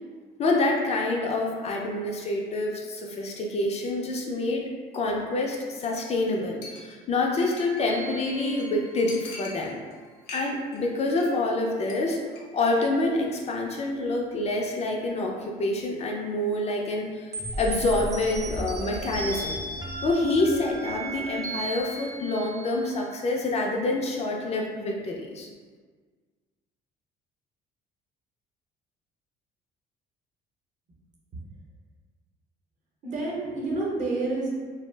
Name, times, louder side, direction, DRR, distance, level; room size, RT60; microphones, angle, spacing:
voice 1, 0.4-9.8 10.3-12.2 12.5-17.3 17.6-19.6 20.0-25.5, left 2 dB, 40° left, 0 dB, 0.4 m, -27 dB
Chink clink, 5.8-6.0 6.3-6.4 6.6-7.9 8.3-8.4 8.6-8.7 9.1-9.9 10.2-10.8 11.0-11.3 11.6-11.9 12.3-12.4, left 2 dB, 85° left, 0.6 m, -42 dB
sound 1, 7.8-9.3 17.3-23.1, right 2 dB, 20° right, 0.5 m, -35 dB
voice 2, 33.0-34.5, right 2 dB, 45° right, -4 dB, 0.8 m, -29 dB
2.3 x 2.0 x 3.2 m, 1.5 s
cardioid pair, 110°, 17 cm